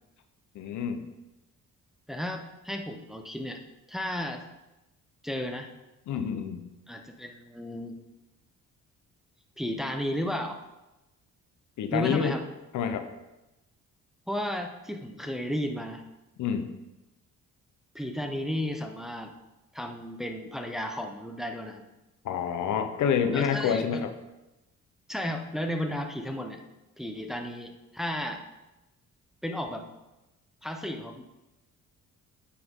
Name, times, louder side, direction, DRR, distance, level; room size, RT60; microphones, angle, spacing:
voice 1, 0.5-1.1 6.1-6.6 11.8-12.3 12.7-13.1 16.4-16.7 22.2-24.1, left 7 dB, 75° left, 8 dB, 0.9 m, -28 dB
voice 2, 2.1-3.6 3.9-4.4 5.2-5.7 6.9-8.0 9.6-10.6 11.9-12.4 14.3-16.0 17.9-19.3 19.7-21.8 23.3-24.0 25.1-26.6 27.0-28.5 29.4-29.9 30.6-31.2, equal, ahead, 4 dB, 0.8 m, -33 dB
9.4 x 6.0 x 3.7 m, 0.99 s
cardioid pair, 90°, 30 cm